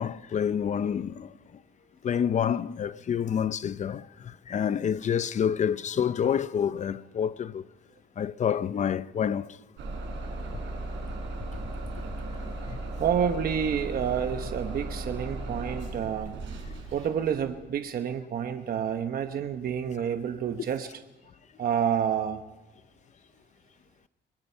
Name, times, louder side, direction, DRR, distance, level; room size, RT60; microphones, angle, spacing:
voice 1, 0.0-1.3 2.0-7.6 8.2-9.5 12.4-12.8 16.7-16.8, left 8 dB, 40° left, 0.6 m, -28 dB
Bus / Engine starting, 9.8-17.5, right 2 dB, 90° right, 6.4 m, -36 dB
voice 2, 13.0-16.3 16.9-20.9 21.6-22.4, right 8 dB, 55° right, 1.0 m, -29 dB
23.5 x 22.0 x 5.6 m
cardioid pair, 140°, 18 cm